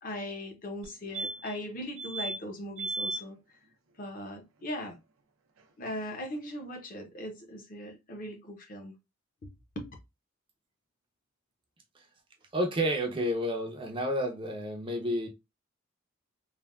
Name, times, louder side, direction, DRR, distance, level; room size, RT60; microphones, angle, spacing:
voice 1, 0.0-3.4 4.0-5.0 5.8-8.9 9.8-9.9, left 1 dB, 40° left, 0.7 m, -39 dB
sound 1, 0.8-0.9 1.1-1.6 2.0-2.4 2.8-3.2 5.6-5.7 5.9-6.0, right 2 dB, 80° right, 0.5 m, -35 dB
voice 2, 12.5-15.3, equal, 25° right, 0.5 m, -30 dB
3.3 x 2.1 x 2.3 m
head